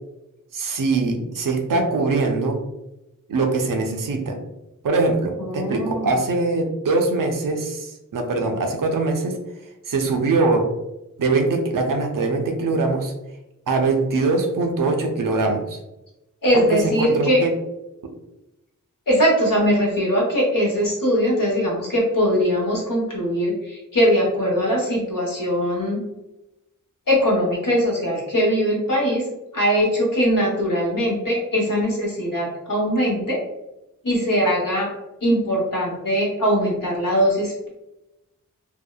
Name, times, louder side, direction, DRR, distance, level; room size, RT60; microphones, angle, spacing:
voice 1, 0.5-2.6 3.3-4.4 4.8-9.4 9.9-10.7 11.2-13.1 13.7-15.8 16.5-17.5 18.0-18.1, right 3 dB, 75° right, 3 dB, 0.5 m, -22 dB
voice 2, 5.4-6.1 16.4-17.4 19.1-26.1 27.1-33.4 34.0-34.9 35.2-37.7, equal, 80° left, -3 dB, 0.9 m, -21 dB
2.7 x 2.0 x 2.2 m, 0.94 s
wide cardioid pair, 50°, 33 cm